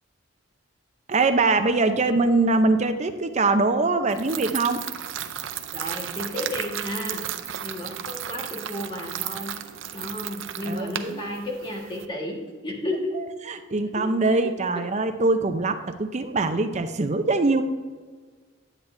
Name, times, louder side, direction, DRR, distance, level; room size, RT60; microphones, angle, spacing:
voice 1, 1.1-4.8 10.6-11.3 13.1-17.6, right 3 dB, 35° right, 8 dB, 0.6 m, -23 dB
sound 1, 4.1-12.0, right 10 dB, 85° right, 0.6 m, -34 dB
voice 2, 5.7-7.2 7.6-9.6 9.9-13.1 14.0-14.1, left 1 dB, 25° left, -1 dB, 1.7 m, -32 dB
9.9 x 8.5 x 2.7 m, 1.5 s
head